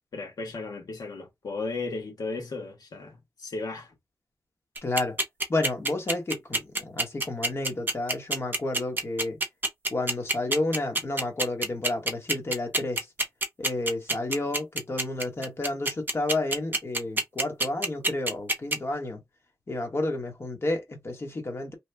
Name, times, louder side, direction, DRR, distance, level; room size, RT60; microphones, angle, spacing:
voice 1, 0.0-3.9, left 3 dB, 85° left, 1.3 m, -35 dB
voice 2, 4.8-5.2 5.5-9.4 9.9-13.1 13.6-19.2 19.7-21.7, left 2 dB, 40° left, 1.2 m, -31 dB
sound 1, 4.8-18.8, right 2 dB, 30° right, 0.8 m, -26 dB
2.9 x 2.3 x 3.4 m
wide cardioid pair, 140°, 6 cm